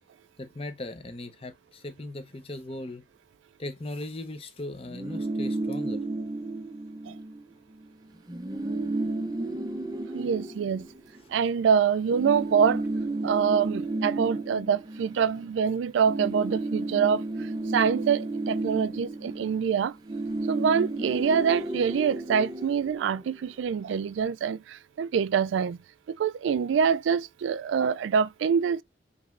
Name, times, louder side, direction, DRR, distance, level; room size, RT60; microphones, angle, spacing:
voice 1, 0.4-3.1 3.6-6.0, left 1 dB, 30° left, 0.7 m, -38 dB
sound 1, 4.8-7.4 7.7-7.9 8.1-11.5 12.1-15.6 15.9-23.5, right 2 dB, 20° right, 0.5 m, -33 dB
voice 2, 10.1-10.9 11.3-12.8 13.2-17.2 17.7-19.9 20.5-25.8 26.1-28.8, right 7 dB, 90° right, 0.3 m, -25 dB
5.3 x 3.0 x 2.4 m
head